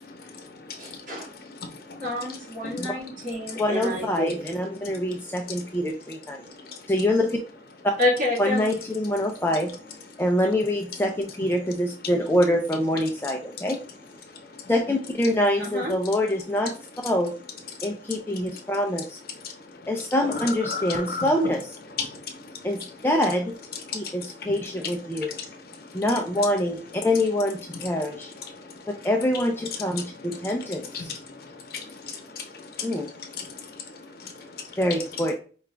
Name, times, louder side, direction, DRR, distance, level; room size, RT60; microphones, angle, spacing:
voice 1, 0.0-2.1 2.6-2.9 4.8-5.0 6.7-6.8 14.5-14.6 20.7-21.2 22.0-22.6 23.9-24.5 25.3-25.5 28.5-28.8 30.5-30.6 30.9-34.8, left 5 dB, 55° left, 3 dB, 0.8 m, -37 dB
voice 2, 0.8-1.3 2.0-4.5 8.0-8.7 15.6-15.9, left 1 dB, 50° right, -5 dB, 2.0 m, -28 dB
voice 3, 3.6-6.4 6.9-7.4 8.4-9.7 10.2-13.8 14.7-16.7 17.0-17.3 17.8-19.2 19.9-21.7 22.6-23.5 23.9-25.3 25.9-28.3 29.0-31.0 32.8-33.1 34.8-35.3, left 1 dB, 10° left, 2 dB, 0.3 m, -25 dB
4.8 x 2.3 x 3.3 m, 0.39 s
head